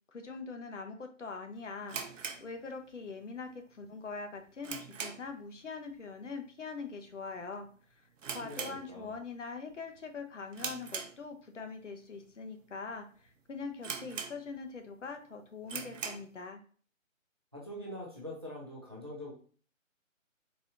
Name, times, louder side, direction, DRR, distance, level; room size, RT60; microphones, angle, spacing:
voice 1, 0.1-2.0 2.4-7.7 8.3-16.6, left 4 dB, 65° left, 5 dB, 0.8 m, -43 dB
sound 1, 1.8-3.2 3.5-3.6 4.1-5.5 5.7-6.0 6.3-6.4 7.1-7.4 7.7-7.8 8.2-9.3 9.7-10.0 10.5-11.6 12.2-12.3 12.9-13.0 13.3-13.4 13.8-14.8 15.1-15.2 15.6-16.3, right 5 dB, 70° right, 0.6 m, -41 dB
voice 2, 8.4-9.1 17.5-19.3, left 1 dB, 20° right, -4 dB, 0.5 m, -44 dB
4.1 x 2.8 x 2.5 m, 0.42 s
figure-of-eight pair, 160°, 40 cm